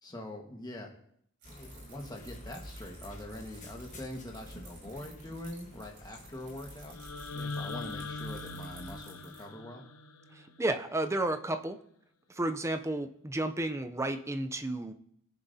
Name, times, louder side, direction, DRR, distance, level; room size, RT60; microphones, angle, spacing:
voice 1, 0.0-0.9 1.5-7.0 7.3-9.8, left 1 dB, 20° left, 1 dB, 1.5 m, -43 dB
sound 1, 1.4-9.0, equal, 35° left, 1.3 m, -50 dB
sound 2, 1.4-9.5, right 2 dB, 80° right, 4.7 m, -56 dB
sound 3, 6.9-11.0, left 3 dB, 75° left, 0.8 m, -41 dB
voice 2, 10.3-11.8 12.3-14.9, right 2 dB, 15° right, 8 dB, 0.5 m, -32 dB
17.0 x 7.1 x 2.8 m, 0.68 s
head